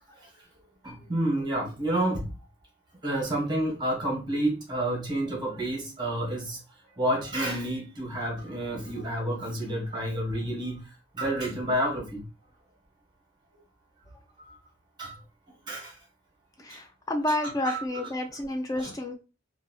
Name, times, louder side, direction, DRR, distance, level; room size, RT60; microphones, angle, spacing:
voice 1, 0.8-2.3 3.0-6.6 7.0-10.8 11.1-12.2 14.4-14.6 15.0-15.2 15.7-15.9 16.7-16.8 17.6-17.8 18.8-18.9, right 1 dB, 20° right, 1.1 m, -29 dB
voice 2, 16.6-19.1, left 1 dB, 20° left, 0.3 m, -30 dB
2.7 x 2.2 x 2.7 m
head